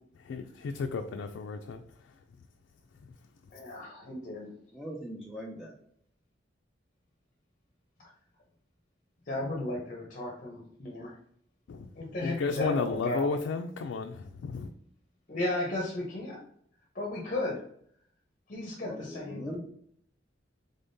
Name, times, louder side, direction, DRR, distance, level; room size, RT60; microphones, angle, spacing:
voice 1, 0.2-1.8 11.7-14.7, left 4 dB, 80° left, 5 dB, 0.3 m, -33 dB
voice 2, 3.5-4.5 9.3-11.1 12.0-13.3 15.3-16.4 16.9-17.6 18.5-19.5, left 1 dB, 45° left, -1 dB, 0.7 m, -34 dB
voice 3, 4.7-5.8 18.8-19.6, equal, ahead, -3 dB, 0.4 m, -40 dB
3.8 x 3.5 x 2.6 m, 0.65 s
head